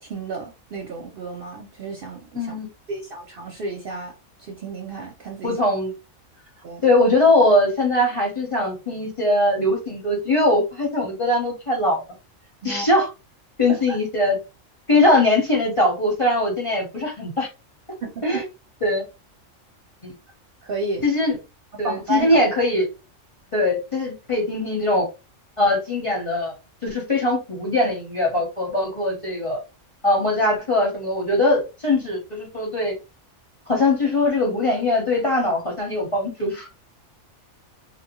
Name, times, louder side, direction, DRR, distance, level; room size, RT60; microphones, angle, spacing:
voice 1, 0.0-2.5 2.9-4.1 4.4-5.6 6.6-6.9 12.6-12.9 13.9-14.0 18.0-18.4 20.6-21.1 21.8-22.5, right 3 dB, 60° right, 0.6 m, -31 dB
voice 2, 2.3-2.7 5.4-5.9 6.8-12.0 12.6-13.1 13.6-14.4 14.9-17.5 18.2-18.4 18.8-19.0 20.0-20.1 21.0-21.4 21.8-22.9 23.5-25.1 25.6-26.5 26.8-29.6 30.0-32.9 33.7-36.7, left 2 dB, 30° left, 0.7 m, -21 dB
2.7 x 2.1 x 2.9 m
omnidirectional pair, 1.3 m